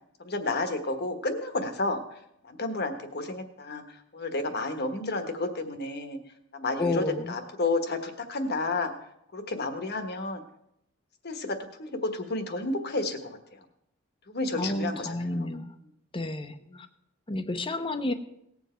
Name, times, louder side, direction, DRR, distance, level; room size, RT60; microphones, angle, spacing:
voice 1, 0.2-2.0 2.5-3.8 4.1-6.2 6.5-8.9 9.3-10.4 11.2-13.3 14.3-15.5 16.7-16.8, left 2 dB, 55° left, 7 dB, 1.3 m, -31 dB
voice 2, 6.8-7.4 14.6-15.7 16.1-16.9 17.3-18.1, left 2 dB, 25° left, 9 dB, 0.8 m, -31 dB
18.5 x 7.3 x 4.4 m, 0.77 s
head